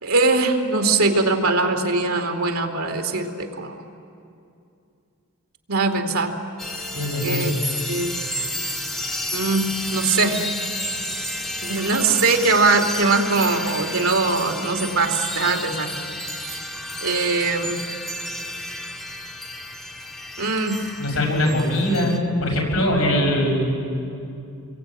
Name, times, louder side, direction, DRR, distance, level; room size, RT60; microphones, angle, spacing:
voice 1, 0.0-3.7 5.7-6.3 7.2-7.5 7.9-8.2 9.3-10.4 11.6-15.9 16.5-16.6 17.0-17.8 20.4-20.8, right 3 dB, 75° right, 4 dB, 2.6 m, -21 dB
sound 1, 6.6-22.2, left 1 dB, ahead, 2.1 m, -31 dB
voice 2, 6.9-7.5 21.0-23.8, left 1 dB, 80° left, 0 dB, 7.3 m, -21 dB
29.0 x 22.5 x 9.0 m, 2.6 s
head